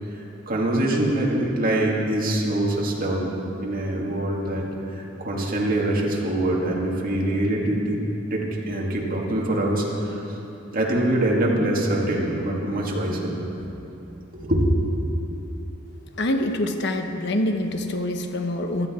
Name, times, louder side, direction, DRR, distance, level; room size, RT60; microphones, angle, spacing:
voice 1, 0.1-8.0 8.3-10.4 10.7-13.6 14.3-14.7, right 1 dB, 45° right, -2 dB, 2.0 m, -24 dB
voice 2, 16.2-18.9, left 1 dB, 60° left, 6 dB, 1.0 m, -25 dB
16.0 x 12.0 x 4.3 m, 3.0 s
head